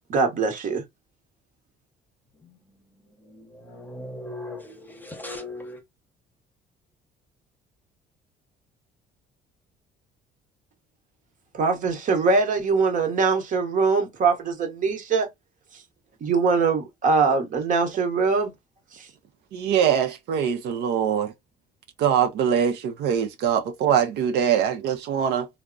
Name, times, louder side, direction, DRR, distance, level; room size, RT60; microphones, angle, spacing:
voice 1, 0.1-0.8 11.5-15.3 15.7-15.8 16.2-18.5 18.9-19.1, right 4 dB, 50° right, 1.0 m, -22 dB
voice 2, 3.2-5.8, left 2 dB, 10° left, 0.9 m, -38 dB
voice 3, 19.5-21.3 22.0-25.5, right 8 dB, 80° right, 0.6 m, -23 dB
3.4 x 2.1 x 2.4 m
cardioid pair, 110°, 17 cm